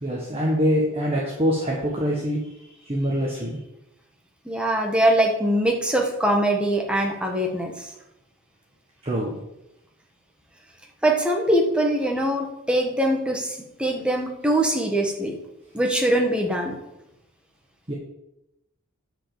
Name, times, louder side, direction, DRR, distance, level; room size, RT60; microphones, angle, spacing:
voice 1, 0.0-2.4 2.8-3.6 9.0-9.3 17.9-18.0, equal, 30° right, -2 dB, 1.5 m, -24 dB
voice 2, 4.4-7.7 11.0-15.4 15.7-16.8, right 1 dB, 5° right, 1 dB, 1.5 m, -22 dB
9.9 x 5.2 x 7.1 m, 0.89 s
head